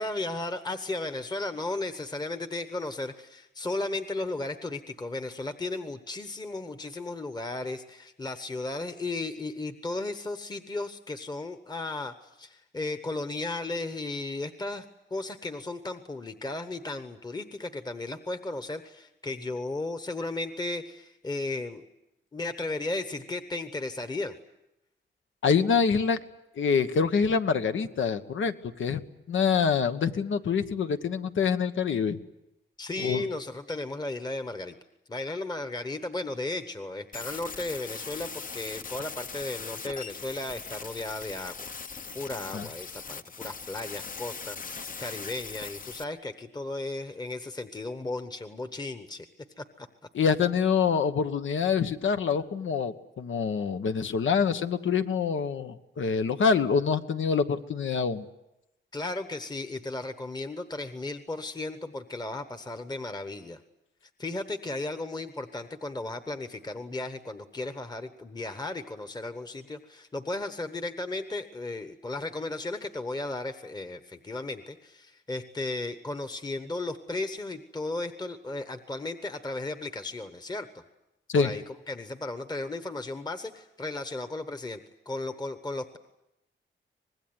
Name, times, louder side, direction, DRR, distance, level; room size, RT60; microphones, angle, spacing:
voice 1, 0.0-21.9 22.3-24.3 32.8-34.8 35.1-41.7 42.1-49.3 49.6-49.9 58.9-63.6 64.2-80.7 81.3-84.8 85.1-86.0, left 2 dB, 20° left, 9 dB, 1.1 m, -35 dB
voice 2, 25.4-26.2 26.6-28.5 28.8-29.0 29.3-32.2 33.0-33.2 42.5-42.7 50.1-58.2 81.3-81.5, left 6 dB, 85° left, 9 dB, 1.3 m, -26 dB
sound 1, 37.1-46.0, left 5 dB, 45° left, 0.9 m, -40 dB
25.0 x 20.5 x 9.5 m, 0.90 s
wide cardioid pair, 130°, 20 cm